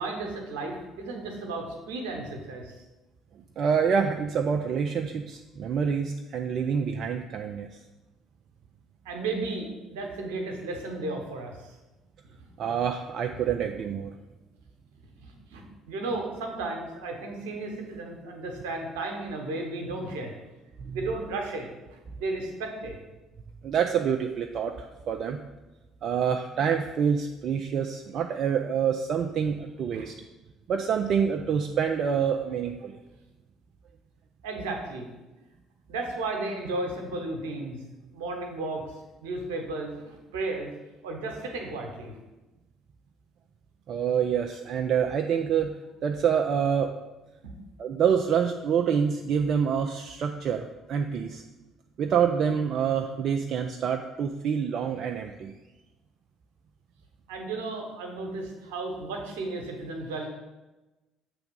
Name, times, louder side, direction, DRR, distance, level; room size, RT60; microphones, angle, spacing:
voice 1, 0.0-2.8 9.0-11.8 15.2-20.3 20.9-23.0 29.9-30.0 34.4-35.1 35.9-38.9 39.2-40.7 41.0-42.2 47.4-47.5 57.3-60.3, right 2 dB, 75° right, 2 dB, 1.1 m, -34 dB
voice 2, 3.6-7.8 12.6-14.1 20.8-21.0 23.6-25.4 26.0-30.1 30.7-33.0 43.9-45.7 46.0-46.9 47.8-51.4 52.0-55.5, right 7 dB, 55° right, 4 dB, 0.4 m, -27 dB
6.9 x 3.4 x 5.3 m, 1.1 s
hypercardioid pair, 55°, 0 cm